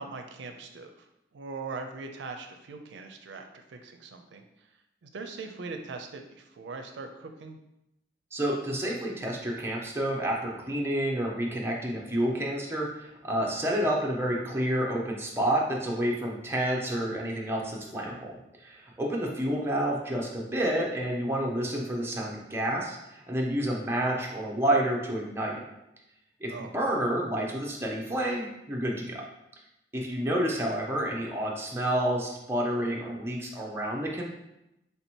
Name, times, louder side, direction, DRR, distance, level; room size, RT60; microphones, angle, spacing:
voice 1, 0.0-4.7 5.0-7.6 13.7-13.9 26.5-26.7, right 4 dB, 85° right, 5 dB, 0.4 m, -41 dB
voice 2, 8.3-25.6 26.4-29.2 29.9-34.3, right 1 dB, 15° right, -2 dB, 0.6 m, -29 dB
3.4 x 2.8 x 4.4 m, 0.87 s
head